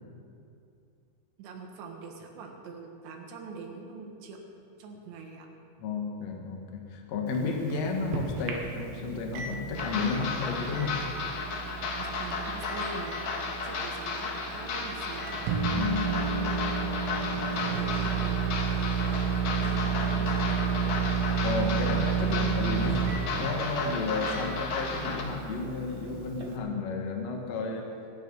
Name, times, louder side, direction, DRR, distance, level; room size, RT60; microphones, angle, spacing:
voice 1, 1.4-4.4 4.8-5.5 12.0-13.2 13.6-15.4 17.5-18.7 19.0-21.1, right 4 dB, 75° right, 2 dB, 3.7 m, -44 dB
voice 2, 5.8-11.0 15.7-16.6 21.4-23.1 23.4-27.9, left 4 dB, 85° left, 2 dB, 1.4 m, -32 dB
Microwave oven, 7.3-26.6, right 6 dB, 90° right, 3.9 m, -32 dB
sound 1, 9.7-25.2, left 4 dB, 60° left, 2.4 m, -34 dB
24.0 x 9.7 x 5.5 m, 2.6 s
omnidirectional pair, 5.4 m